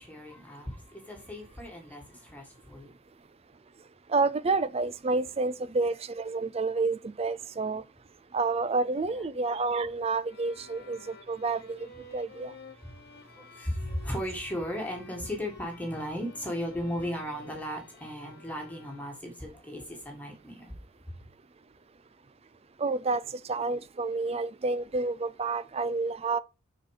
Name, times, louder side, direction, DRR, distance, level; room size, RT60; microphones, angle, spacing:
voice 1, 0.0-2.9 9.1-9.2 10.9-11.0 12.7-20.7, equal, 5° left, 1.6 m, -36 dB
voice 2, 4.1-7.8 8.3-11.8 12.1-12.5 22.8-23.2 23.5-26.4, right 3 dB, 30° right, 0.4 m, -29 dB
sound 1, 10.2-19.5, left 3 dB, 50° left, 1.4 m, -52 dB
6.6 x 4.2 x 6.4 m
head